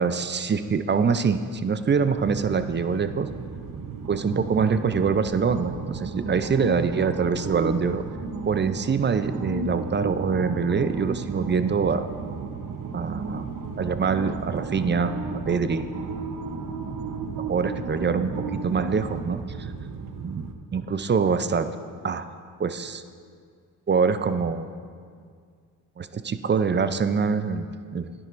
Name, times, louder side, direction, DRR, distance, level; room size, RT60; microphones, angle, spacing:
voice 1, 0.0-3.3 4.1-8.0 8.5-12.1 12.9-13.5 13.8-15.1 15.5-15.9 17.5-19.7 20.2-21.7 22.0-22.2 22.6-23.0 23.9-24.7 26.0-27.7 27.9-28.1, right 5 dB, 25° right, 11 dB, 0.5 m, -24 dB
sound 1, 2.2-20.5, right 4 dB, 45° right, 0.9 m, -34 dB
12.0 x 9.8 x 2.6 m, 2.1 s
supercardioid pair, 55°, 44 cm